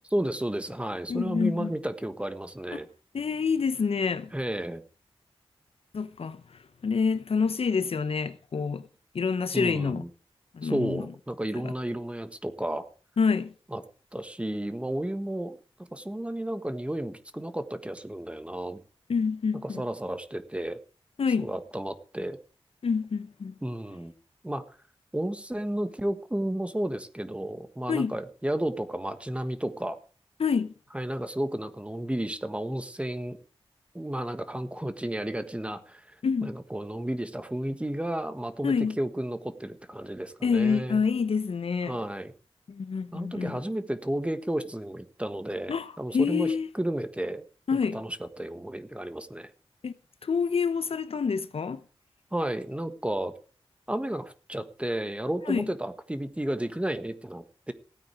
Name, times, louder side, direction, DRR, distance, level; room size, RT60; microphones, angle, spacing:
voice 1, 0.1-2.9 4.3-4.8 9.5-10.1 10.6-12.8 13.7-13.8 14.1-15.6 15.9-18.8 19.6-20.8 21.4-22.4 23.6-24.1 24.4-24.6 25.1-30.0 30.9-33.4 33.9-36.0 36.4-41.0 41.9-42.3 43.1-46.5 46.7-47.4 47.9-49.5 52.3-53.3 53.9-57.7, right 1 dB, 10° right, 1.4 m, -32 dB
voice 2, 1.1-1.7 2.7-2.8 3.1-4.3 5.9-6.4 6.8-8.9 9.1-10.0 10.5-11.1 11.6-11.7 13.2-13.5 19.1-19.8 21.2-21.5 22.8-23.5 27.9-28.2 30.4-30.7 36.2-36.6 38.6-39.0 40.4-42.0 42.7-43.6 45.7-46.7 47.7-48.0 49.8-50.0 50.2-51.8 55.5-55.7, left 5 dB, 75° left, 0.9 m, -27 dB
16.5 x 9.0 x 5.0 m
wide cardioid pair, 85°, 10 cm